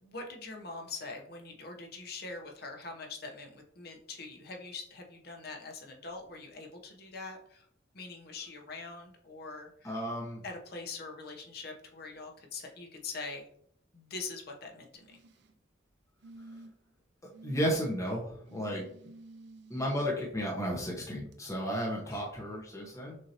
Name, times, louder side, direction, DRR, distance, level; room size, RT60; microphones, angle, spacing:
voice 1, 0.0-7.6 7.9-10.0 10.4-13.5 13.9-15.0 22.0-22.2, left 3 dB, 55° left, 2 dB, 0.9 m, -43 dB
voice 2, 9.8-10.4 17.4-18.8 19.7-23.2, equal, 15° left, -3 dB, 0.9 m, -33 dB
sound 1, 14.9-15.5 16.2-16.9 17.3-17.8 18.5-20.1 21.3-21.4, right 2 dB, 60° right, 0.5 m, -51 dB
6.3 x 2.7 x 2.8 m, 0.65 s
head